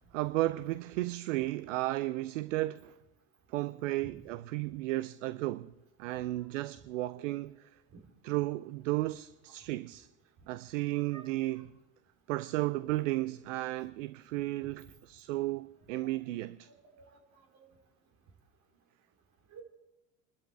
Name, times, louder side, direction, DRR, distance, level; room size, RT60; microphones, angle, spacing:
voice 1, 0.0-2.9 3.5-5.7 6.0-7.5 8.2-10.1 10.5-11.7 12.3-16.7, right 18 dB, 70° right, 0.6 m, -34 dB
voice 2, 10.9-11.7 16.1-16.3 16.7-17.1 17.3-17.7 19.5-19.6, right 4 dB, 45° right, 3.2 m, -54 dB
28.5 x 12.5 x 3.4 m
hypercardioid pair, 85°, 40 cm